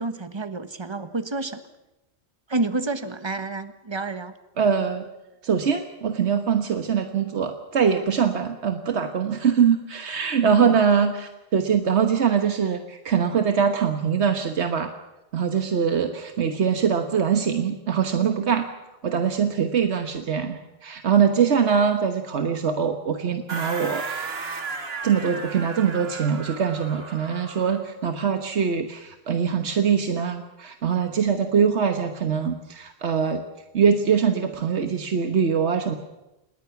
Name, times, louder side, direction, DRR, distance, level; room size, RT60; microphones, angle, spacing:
voice 1, 0.0-1.6 2.5-4.3 10.4-10.7, right 2 dB, 25° right, 10 dB, 1.3 m, -29 dB
voice 2, 4.6-5.0 5.4-14.9 15.3-18.7 19.0-24.3 25.0-33.4 33.7-35.9, right 7 dB, 90° right, 6 dB, 1.5 m, -23 dB
sound 1, 23.5-27.9, right 4 dB, 65° right, 1.9 m, -34 dB
27.0 x 21.0 x 5.9 m, 0.97 s
omnidirectional pair, 1.1 m